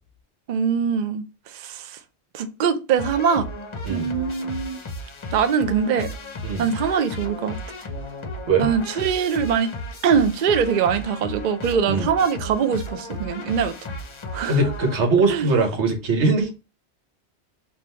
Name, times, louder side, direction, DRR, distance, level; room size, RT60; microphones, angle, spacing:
voice 1, 0.5-2.0 2.3-3.4 3.9-4.8 5.3-6.1 6.6-7.6 8.6-9.7 10.0-13.7 14.3-14.6 15.3-15.5, right 7 dB, 55° right, 0.6 m, -22 dB
sound 1, 3.0-15.4, left 1 dB, 35° left, 0.6 m, -34 dB
voice 2, 14.5-16.5, right 3 dB, 85° right, 1.4 m, -21 dB
3.5 x 2.6 x 4.2 m
omnidirectional pair, 1.1 m